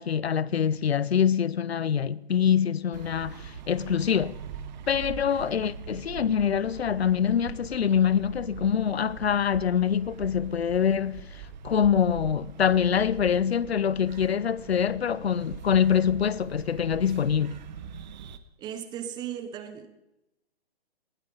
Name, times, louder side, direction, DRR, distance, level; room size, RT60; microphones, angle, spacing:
voice 1, 0.0-4.3 4.9-17.6, left 8 dB, 85° left, 0.7 m, -25 dB
sound 1, 2.9-18.4, right 7 dB, 45° right, 1.0 m, -42 dB
voice 2, 18.6-19.9, right 9 dB, 15° right, 0.8 m, -36 dB
19.5 x 16.0 x 3.9 m
hypercardioid pair, 140°, 31 cm